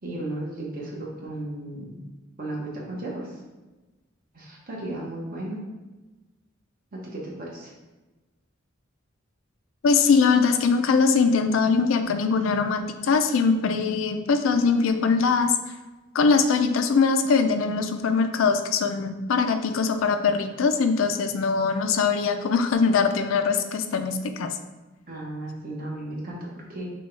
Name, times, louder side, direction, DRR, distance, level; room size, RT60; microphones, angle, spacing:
voice 1, 0.0-2.0 2.4-3.4 4.3-5.6 6.9-7.7 25.1-26.8, right 1 dB, 45° right, -4 dB, 1.1 m, -35 dB
voice 2, 9.8-15.5 16.1-24.5, left 5 dB, 70° left, 7 dB, 0.4 m, -22 dB
6.1 x 2.3 x 3.3 m, 1.2 s
head